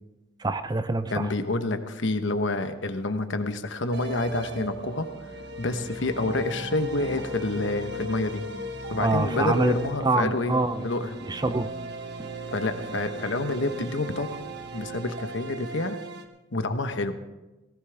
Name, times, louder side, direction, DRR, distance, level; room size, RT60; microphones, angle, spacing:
voice 1, 0.4-1.3 9.0-9.8 10.0-10.9 11.2-11.7, right 2 dB, 20° right, 11 dB, 0.6 m, -25 dB
voice 2, 1.1-5.1 5.6-8.4 8.9-11.2 12.5-14.4 14.7-16.0 16.5-17.1, left 2 dB, 70° left, 8 dB, 1.1 m, -28 dB
sound 1, 3.9-16.2, right 1 dB, 60° right, 1.3 m, -37 dB
18.0 x 16.5 x 3.4 m, 1.1 s
head